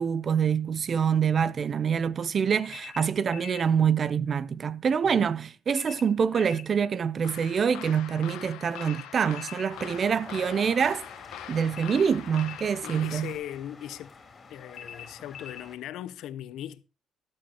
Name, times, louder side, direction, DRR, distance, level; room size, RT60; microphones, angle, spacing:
voice 1, 0.0-11.0 11.5-13.4, right 7 dB, 35° right, 0.5 m, -26 dB
sound 1, 2.7-3.7 5.7-6.7 8.7-9.7 11.7-12.7 14.7-15.7, left 8 dB, 50° left, 1.1 m, -44 dB
sound 2, 7.2-13.4, left 13 dB, 85° left, 1.1 m, -43 dB
sound 3, 9.7-15.8, left 4 dB, 30° left, 3.2 m, -48 dB
voice 2, 12.8-14.1 14.5-16.8, left 11 dB, 70° left, 0.7 m, -39 dB
13.5 x 11.5 x 2.8 m
cardioid pair, 130°, 0 cm